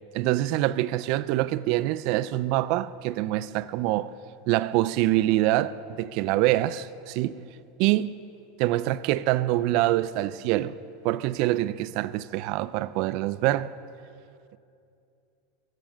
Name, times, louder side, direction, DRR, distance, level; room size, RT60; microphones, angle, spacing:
voice 1, 0.1-4.1 4.5-7.4 7.8-8.1 8.6-10.8 11.0-13.7, right 15 dB, 50° right, 0.3 m, -25 dB
15.5 x 7.3 x 5.2 m
supercardioid pair, 155°, 0 cm